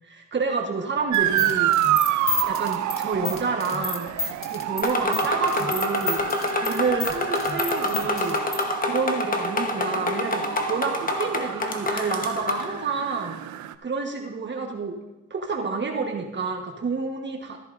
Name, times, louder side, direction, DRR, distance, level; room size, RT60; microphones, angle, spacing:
voice 1, 0.0-1.7 2.5-4.1 4.5-6.2 6.6-8.4 8.8-13.4 13.8-15.0 15.3-17.6, right 4 dB, 35° right, 2 dB, 1.3 m, -29 dB
sound 1, 1.1-8.6, left 4 dB, 45° left, 1.5 m, -31 dB
Motor vehicle (road) / Siren, 1.1-13.7, right 12 dB, 70° right, 0.5 m, -29 dB
sound 2, 4.8-12.7, left 1 dB, 30° left, 1.1 m, -27 dB
14.0 x 10.5 x 2.6 m, 1.0 s
cardioid pair, 90°, 30 cm